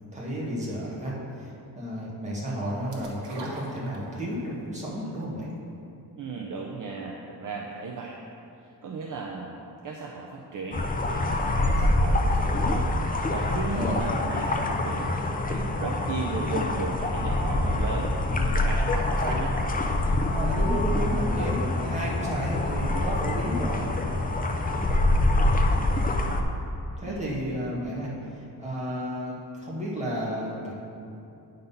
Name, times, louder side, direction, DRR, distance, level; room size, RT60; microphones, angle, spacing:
voice 1, 0.1-1.5 1.7-5.5 13.7-14.0 20.2-23.8 27.0-30.7, equal, 15° right, -6 dB, 1.5 m, -32 dB
sound 1, 2.9-4.4 4.8-4.9, right 2 dB, 80° right, 1.2 m, -41 dB
voice 2, 6.2-8.2 8.8-9.6 9.8-12.9 13.3-19.5 27.0-27.4, right 4 dB, 50° right, -1 dB, 0.6 m, -35 dB
sound 2, 10.7-26.4, left 2 dB, 20° left, 0.4 m, -25 dB
9.2 x 4.0 x 5.4 m, 2.7 s
wide cardioid pair, 175°, 42 cm